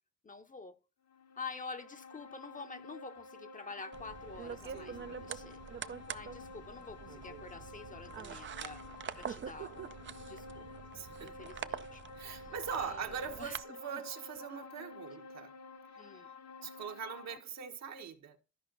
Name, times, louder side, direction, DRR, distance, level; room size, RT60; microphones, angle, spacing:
voice 1, 0.2-0.8 1.4-5.6 6.1-8.8 9.1-10.0 10.3-10.7 11.2-12.0 12.3-13.6 13.9-14.0 16.0-16.3, left 4 dB, 25° left, 0.8 m, -48 dB
sound 1, 1.1-17.4, left 3 dB, 65° left, 1.2 m, -51 dB
sound 2, 3.9-13.6, right 7 dB, 40° right, 0.6 m, -45 dB
voice 2, 4.7-5.1 10.9-11.8 12.1-15.5 16.1-16.2 16.6-18.4, right 7 dB, 60° right, 1.3 m, -42 dB
13.0 x 5.1 x 3.9 m
cardioid pair, 90°, 30 cm